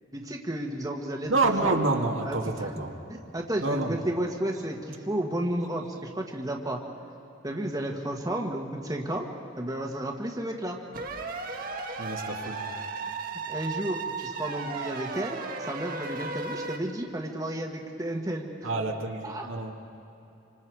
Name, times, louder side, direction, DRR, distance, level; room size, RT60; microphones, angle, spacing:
voice 1, 0.1-1.8 2.2-2.7 3.3-6.8 7.4-9.3 9.6-10.8 13.0-13.1 13.5-18.5 19.2-19.5, right 1 dB, 20° right, 1 dB, 1.5 m, -32 dB
voice 2, 1.3-2.9 3.6-4.0 12.0-12.7 18.6-19.7, right 3 dB, 75° right, 1 dB, 1.9 m, -28 dB
sound 1, 10.9-16.8, right 4 dB, 45° right, 1.4 m, -35 dB
26.5 x 25.5 x 4.8 m, 2.9 s
head